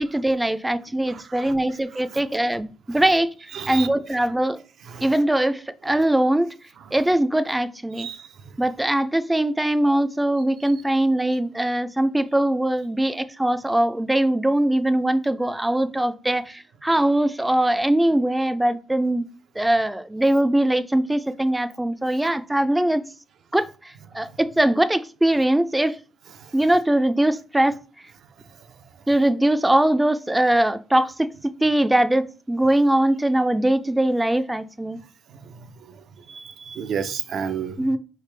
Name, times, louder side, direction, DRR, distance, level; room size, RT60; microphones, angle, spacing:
voice 1, 0.0-3.3 3.7-4.6 5.0-6.5 6.9-8.1 8.6-19.2 19.6-23.0 23.5-23.7 24.1-26.0 26.5-27.8 29.1-31.3 31.6-35.0 37.8-38.0, right 1 dB, 10° right, 0.4 m, -21 dB
voice 2, 1.1-1.6 1.9-2.2 2.9-3.0 3.5-3.9 4.9-5.2 6.8-7.0 7.9-8.6 24.2-24.3 26.4-26.6 35.3-38.0, right 7 dB, 65° right, 0.5 m, -34 dB
4.5 x 3.3 x 3.3 m
cardioid pair, 90°, 0 cm